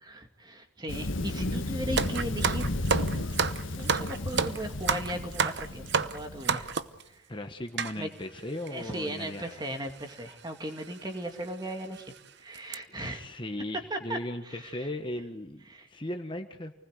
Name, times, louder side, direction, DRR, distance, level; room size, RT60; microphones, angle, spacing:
voice 1, 0.0-2.7 3.8-6.7 7.1-7.2 8.0-8.1 8.7-12.1 12.4-13.2 13.9-14.2 14.4-14.8 15.7-15.9, right 1 dB, 20° right, 5 dB, 2.4 m, -37 dB
Thunder, 0.9-6.7, left 1 dB, 70° left, 1.6 m, -33 dB
sound 1, 2.0-7.0 7.8-7.9 8.7-8.8 8.9-9.1 10.1-10.3 10.8-10.9 11.4-11.5 11.9-12.2 12.5-12.7, right 5 dB, 55° right, 0.9 m, -29 dB
voice 2, 7.3-9.6 12.9-16.7, left 1 dB, 25° left, 5 dB, 1.4 m, -37 dB
29.0 x 20.0 x 8.1 m, 0.87 s
head